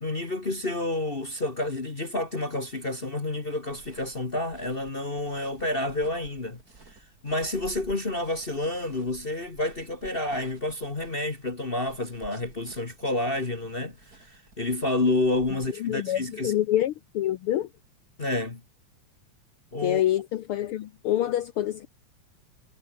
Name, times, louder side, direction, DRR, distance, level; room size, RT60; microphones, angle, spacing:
voice 1, 0.0-6.6 7.2-16.5 18.2-18.6 19.7-20.0, left 2 dB, 30° left, 1.1 m, -29 dB
sound 1, 3.6-15.6, right 3 dB, 30° right, 3.7 m, -53 dB
voice 2, 15.8-17.7 19.8-21.9, left 12 dB, 85° left, 1.2 m, -26 dB
omnidirectional pair, 3.4 m